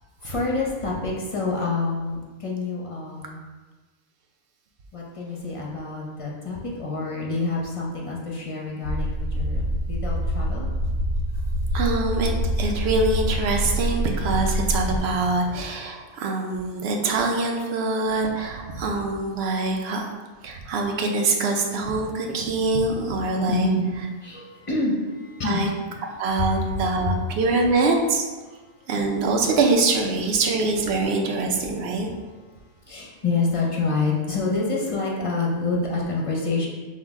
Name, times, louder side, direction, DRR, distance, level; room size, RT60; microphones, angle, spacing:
voice 1, 0.2-3.4 4.9-10.7 23.5-23.9 24.2-25.6 26.4-26.5 32.9-36.7, left 3 dB, 35° left, -3 dB, 0.6 m, -27 dB
sound 1, 8.8-15.0, equal, 80° right, 1.4 m, -25 dB
voice 2, 11.7-20.1 20.4-23.7 25.4-25.7 26.2-28.2 28.9-32.1, right 3 dB, 65° right, 2 dB, 0.8 m, -24 dB
5.9 x 2.2 x 3.5 m, 1.3 s
omnidirectional pair, 1.3 m